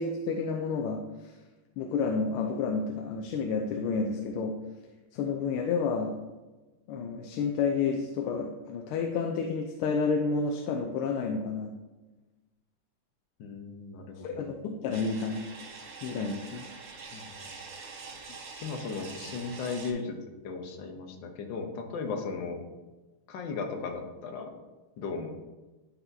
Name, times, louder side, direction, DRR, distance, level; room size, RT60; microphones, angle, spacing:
voice 1, 0.0-1.3 1.8-4.6 5.1-6.2 6.9-11.7 14.2-15.4 16.0-16.6, left 5 dB, 85° left, 4 dB, 1.5 m, -30 dB
voice 2, 13.4-14.4 17.1-17.4 18.6-22.6 23.3-24.5 25.0-25.3, left 4 dB, 65° left, 4 dB, 1.5 m, -36 dB
sound 1, 14.9-19.9, right 4 dB, 90° right, 2.0 m, -45 dB
12.0 x 4.2 x 2.7 m, 1.2 s
omnidirectional pair, 2.4 m